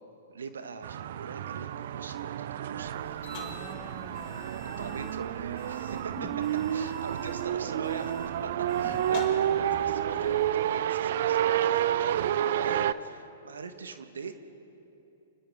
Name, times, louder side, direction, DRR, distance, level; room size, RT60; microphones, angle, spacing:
voice 1, 0.3-1.7 1.9-3.5 4.8-6.1 6.7-8.5 8.8-14.4, right 5 dB, 70° right, 9 dB, 1.3 m, -42 dB
sound 1, 0.8-12.9, right 11 dB, 55° right, 0.5 m, -30 dB
sound 2, 2.8-10.5, left 5 dB, 40° left, 2.3 m, -47 dB
voice 2, 3.3-5.2 6.2-6.4 8.8-9.0, left 3 dB, 10° left, 6 dB, 1.5 m, -47 dB
30.0 x 27.5 x 3.6 m, 2.9 s
figure-of-eight pair, 110°, 0 cm